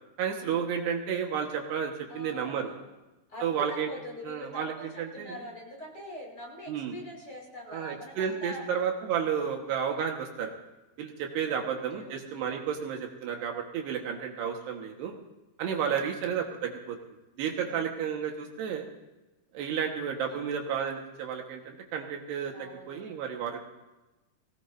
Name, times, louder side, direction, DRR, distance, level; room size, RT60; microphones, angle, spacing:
voice 1, 0.2-2.7 3.4-3.9 4.3-5.4 6.7-7.0 7.7-10.5 11.0-15.2 15.6-17.0 17.4-18.9 19.5-23.6, right 7 dB, 75° right, 2 dB, 3.5 m, -32 dB
voice 2, 2.1-2.9 3.3-8.7 9.4-9.7 11.4-11.6 11.9-12.5 15.7-16.3 17.6-17.9 20.3-20.4 22.5-23.2, left 1 dB, 25° left, -3 dB, 5.2 m, -44 dB
23.5 x 17.5 x 2.7 m, 1.0 s
omnidirectional pair, 4.8 m